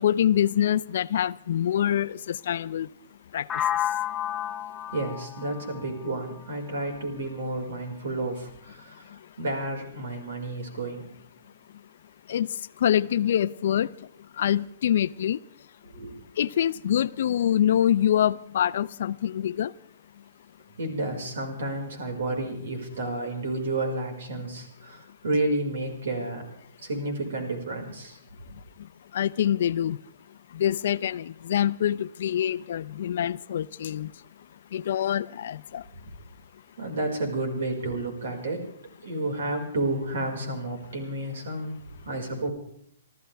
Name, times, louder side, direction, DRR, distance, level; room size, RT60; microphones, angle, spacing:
voice 1, 0.0-2.9 3.3-3.4 12.3-12.5 12.8-13.9 14.4-15.4 16.4-19.7 29.1-30.0 30.5-34.1 34.7-35.8, left 10 dB, 65° left, 17 dB, 0.5 m, -25 dB
sound 1, 3.5-7.4, left 11 dB, 15° left, 0.7 m, -32 dB
voice 2, 4.9-9.1 9.4-11.0 15.9-16.1 20.8-28.2 36.8-38.7 39.0-41.7 42.0-42.5, right 2 dB, 75° right, 2 dB, 5.1 m, -31 dB
27.5 x 13.5 x 3.5 m, 0.67 s
hypercardioid pair, 145°, 0 cm